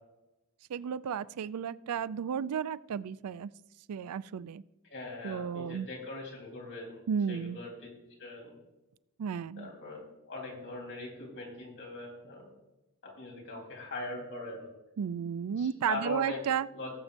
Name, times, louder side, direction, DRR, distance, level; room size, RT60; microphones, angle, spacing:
voice 1, 0.7-3.5 3.9-4.6 5.2-5.9 7.1-7.6 9.2-9.7 15.0-16.7, right 7 dB, 80° right, 18 dB, 0.4 m, -33 dB
voice 2, 4.8-7.0 7.3-7.9 8.2-8.6 9.6-12.5 13.2-14.7 15.6-16.4 16.7-16.9, left 2 dB, 60° left, -1 dB, 3.9 m, -41 dB
18.5 x 7.3 x 2.6 m, 0.97 s
head